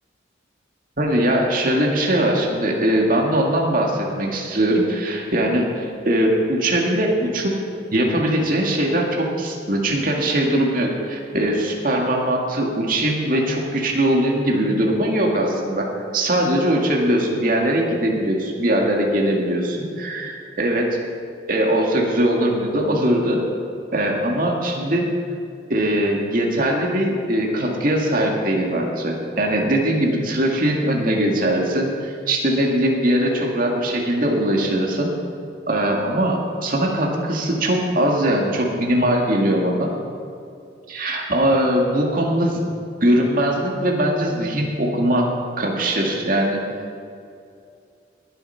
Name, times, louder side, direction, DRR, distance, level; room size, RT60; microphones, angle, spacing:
voice 1, 1.0-7.6 7.9-21.0 21.5-23.4 23.9-25.1 25.7-35.1 35.7-39.9 40.9-42.6 43.0-45.3 45.6-46.6, right 1 dB, 50° right, 0 dB, 2.1 m, -21 dB
20.5 x 7.9 x 5.7 m, 2.4 s
head